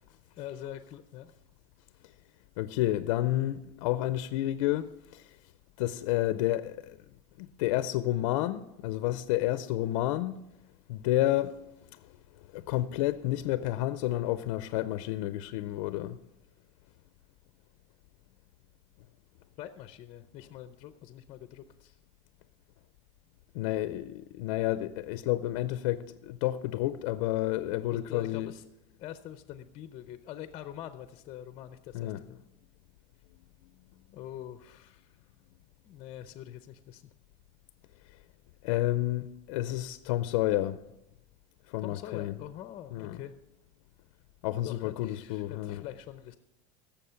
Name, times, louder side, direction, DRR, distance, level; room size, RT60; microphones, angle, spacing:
voice 1, 0.4-1.3 19.6-22.0 27.9-28.6 29.0-32.4 34.1-35.2 35.8-37.0 41.8-43.3 44.6-46.3, left 11 dB, 40° left, 0.6 m, -44 dB
voice 2, 2.6-5.3 5.8-6.9 7.4-10.4 10.9-11.7 11.9-12.0 12.5-16.2 23.5-28.5 31.9-32.2 38.6-40.8 41.7-42.4 42.9-43.2 44.4-45.8, left 15 dB, 80° left, 0.5 m, -30 dB
16.5 x 7.1 x 5.7 m
cardioid pair, 145°, 16 cm